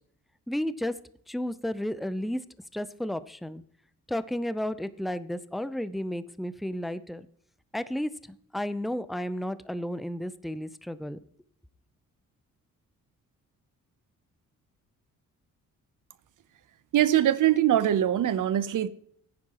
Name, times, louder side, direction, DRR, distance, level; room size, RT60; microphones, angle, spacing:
voice 1, 0.5-0.9 1.3-2.4 2.7-3.6 4.1-7.3 7.7-11.2, left 1 dB, ahead, 0.5 m, -32 dB
voice 2, 16.9-18.9, right 11 dB, 65° right, 0.8 m, -22 dB
15.0 x 9.8 x 3.0 m
supercardioid pair, 60°, 34 cm